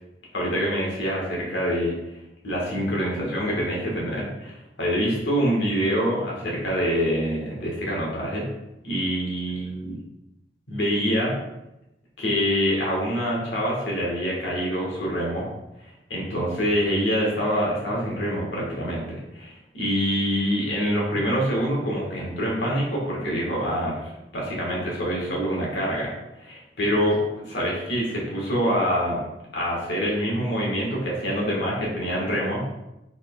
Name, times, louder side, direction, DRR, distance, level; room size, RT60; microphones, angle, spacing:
voice 1, 0.3-1.9 2.4-8.5 8.8-10.0 10.7-11.3 12.2-15.4 16.1-26.1 26.4-27.2 27.5-29.2 29.5-32.6, equal, 85° left, -4 dB, 1.4 m, -25 dB
4.3 x 3.7 x 2.3 m, 0.91 s
head